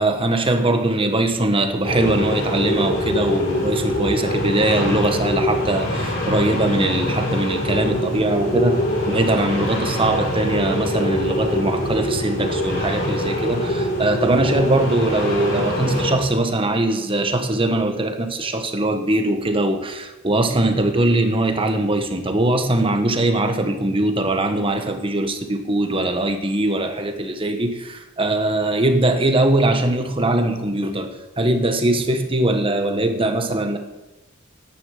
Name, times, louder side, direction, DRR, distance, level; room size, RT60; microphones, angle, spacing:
voice 1, 0.0-33.8, right 1 dB, 25° right, 1.4 m, -21 dB
sound 1, 1.8-16.1, equal, 55° left, 5.8 m, -24 dB
10.5 x 9.8 x 7.6 m
head